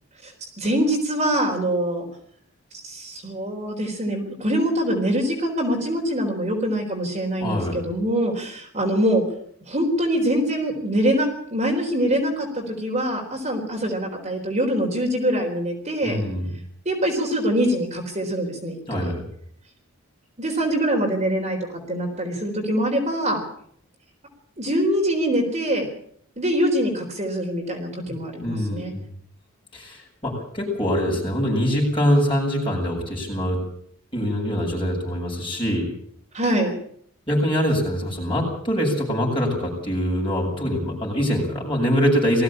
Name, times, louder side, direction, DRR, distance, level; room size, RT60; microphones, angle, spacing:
voice 1, 0.2-2.1 2.7-9.2 9.7-16.2 16.9-19.1 20.4-21.6 21.9-23.4 24.6-25.9 26.4-28.9 36.3-36.8, right 1 dB, 30° right, 1 dB, 4.1 m, -24 dB
voice 2, 7.4-7.8 16.0-16.5 18.9-19.3 28.1-28.2 28.4-29.0 29.7-33.6 34.1-35.9 37.3-42.4, equal, 25° left, -2 dB, 7.7 m, -23 dB
20.0 x 15.5 x 8.8 m, 0.63 s
head